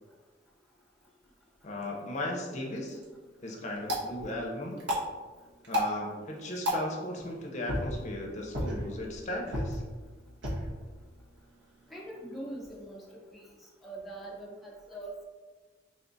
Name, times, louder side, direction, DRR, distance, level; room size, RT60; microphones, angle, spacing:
voice 1, 1.6-3.0 3.4-4.8 5.7-9.8, left 1 dB, 40° left, 0 dB, 0.6 m, -36 dB
sound 1, 2.8-12.8, equal, 70° right, 1.0 m, -37 dB
voice 2, 11.9-13.5 13.8-15.2, right 1 dB, ahead, -4 dB, 0.5 m, -43 dB
3.6 x 2.4 x 3.9 m, 1.4 s
head